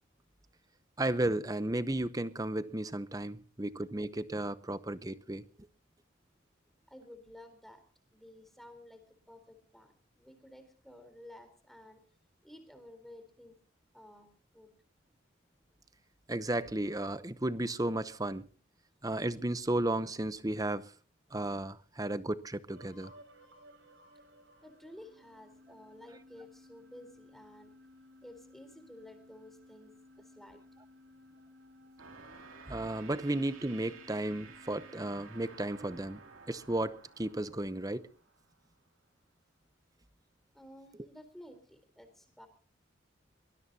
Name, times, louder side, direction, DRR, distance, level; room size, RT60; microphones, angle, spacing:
voice 1, 1.0-5.4 16.3-18.5 19.0-20.9 21.3-23.1 32.7-36.2 36.5-38.1, right 1 dB, 15° right, 0.7 m, -34 dB
voice 2, 6.9-7.8 8.1-12.0 12.4-13.6 13.9-14.7 24.6-27.7 28.2-30.6 40.5-42.5, left 1 dB, ahead, 3.8 m, -53 dB
sound 1, 22.7-38.6, left 1 dB, 70° right, 4.5 m, -59 dB
sound 2, 32.0-38.6, right 5 dB, 90° right, 2.7 m, -54 dB
23.5 x 20.0 x 2.8 m
head